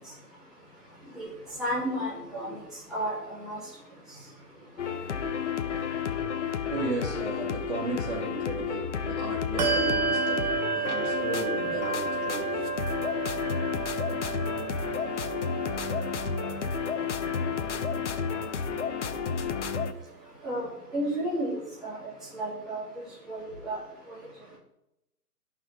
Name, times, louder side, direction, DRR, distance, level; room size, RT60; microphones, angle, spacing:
voice 1, 1.6-2.5 2.9-3.6 20.4-22.0 22.3-22.8 23.3-23.8, right 1 dB, ahead, -12 dB, 2.8 m, -32 dB
sound 1, 4.8-19.9, left 6 dB, 50° left, 0.8 m, -31 dB
voice 2, 6.7-12.7 23.6-23.7, right 2 dB, 45° right, -3 dB, 3.2 m, -35 dB
Bell, 9.6-19.6, right 7 dB, 25° right, 0.9 m, -33 dB
13.5 x 5.6 x 3.5 m, 0.85 s
hypercardioid pair, 150°, 48 cm